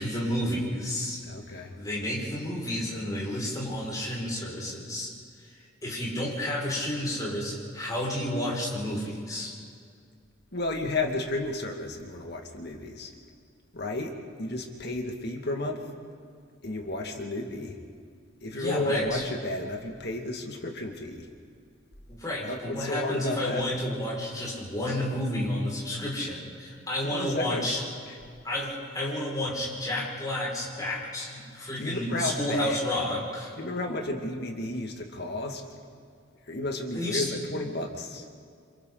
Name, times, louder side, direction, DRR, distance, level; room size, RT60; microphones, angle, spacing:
voice 1, 0.0-1.2 1.5-5.1 5.4-9.6 18.6-19.3 22.1-27.8 28.4-33.5 36.9-37.3, left 1 dB, 20° left, -5 dB, 5.7 m, -31 dB
voice 2, 1.2-1.8 10.5-13.1 13.7-15.9 16.6-17.8 18.4-21.3 22.4-23.6 27.0-27.7 28.1-28.2 31.7-32.8 33.6-35.6 36.5-38.3, left 2 dB, 55° left, 2 dB, 2.2 m, -32 dB
28.0 x 27.0 x 4.0 m, 2.2 s
head